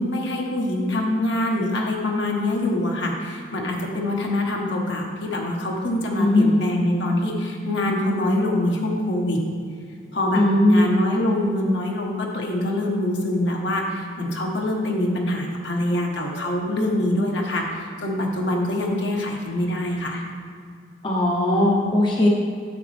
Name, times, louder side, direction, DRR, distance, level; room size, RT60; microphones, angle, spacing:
voice 1, 0.0-9.4 10.1-20.2, left 1 dB, 65° left, 0 dB, 1.2 m, -24 dB
voice 2, 6.2-6.6 10.3-10.9 21.0-22.3, left 1 dB, 25° left, -3 dB, 0.8 m, -18 dB
9.6 x 7.1 x 3.4 m, 2.1 s
head